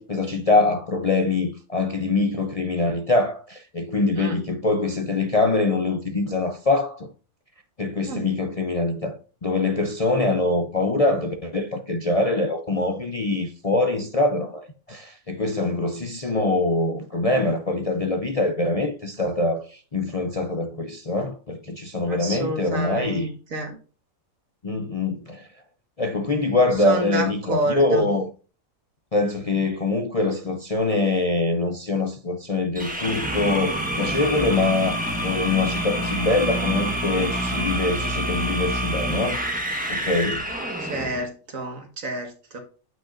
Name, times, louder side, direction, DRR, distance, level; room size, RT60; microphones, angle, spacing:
voice 1, 0.0-7.1 7.8-23.3 24.6-25.5 26.0-28.3 29.1-39.4 39.9-40.5, left 2 dB, 35° left, 0.6 m, -24 dB
voice 2, 22.1-23.8 26.8-28.1 40.8-42.6, right 1 dB, 70° right, 2.1 m, -29 dB
sound 1, 32.7-41.2, right 1 dB, 5° right, 1.3 m, -27 dB
8.9 x 5.4 x 2.6 m
omnidirectional pair, 1.4 m